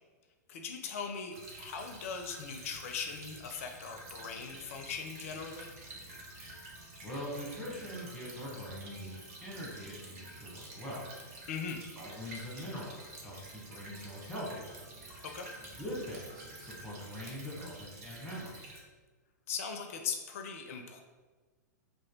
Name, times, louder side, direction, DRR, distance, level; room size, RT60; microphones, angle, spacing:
voice 1, 0.5-5.7 11.5-11.9 15.2-15.5 19.5-21.0, left 6 dB, 50° left, 4 dB, 0.4 m, -40 dB
Stream / Trickle dribble, 1.3-18.8, right 1 dB, 55° right, 0.8 m, -50 dB
sound 1, 4.7-17.0, right 2 dB, 85° right, 0.9 m, -60 dB
voice 2, 7.0-11.0 12.0-14.7 15.8-18.7, equal, ahead, -7 dB, 1.2 m, -42 dB
sound 2, 9.5-18.1, right 2 dB, 25° right, 0.6 m, -62 dB
3.2 x 2.5 x 3.6 m, 1.4 s
figure-of-eight pair, 105°, 10 cm